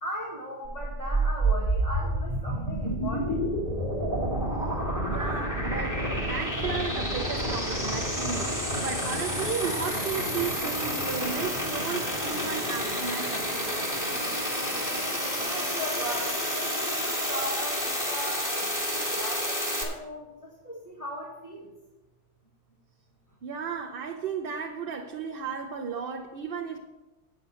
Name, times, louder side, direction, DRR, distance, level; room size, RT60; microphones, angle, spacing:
voice 1, 0.0-3.4 15.4-20.3 20.6-21.7, left 1 dB, 30° left, 1.8 m, -38 dB
sound 1, 0.6-19.8, right 1 dB, 15° left, 2.4 m, -29 dB
voice 2, 5.1-6.0 6.3-13.5 23.4-26.8, right 6 dB, 55° right, 0.9 m, -34 dB
9.4 x 8.0 x 6.3 m
omnidirectional pair, 1.2 m